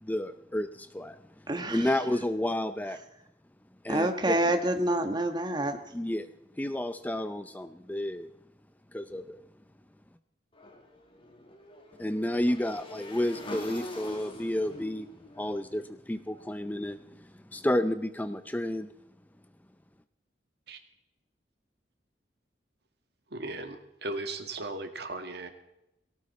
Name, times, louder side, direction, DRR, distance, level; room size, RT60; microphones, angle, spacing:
voice 1, 0.0-1.2 1.7-3.0 3.8-4.4 5.9-6.3 6.6-8.3 8.9-9.4 12.0-15.1 15.4-18.9, left 1 dB, 10° left, 11 dB, 0.6 m, -31 dB
voice 2, 1.5-1.8 3.9-5.8, right 1 dB, 25° right, 6 dB, 1.5 m, -27 dB
Motorcycle / Engine, 10.5-16.7, left 1 dB, 30° left, 2.6 m, -45 dB
voice 3, 23.3-25.5, right 2 dB, 65° right, 7 dB, 1.8 m, -37 dB
18.0 x 17.5 x 4.2 m, 0.86 s
head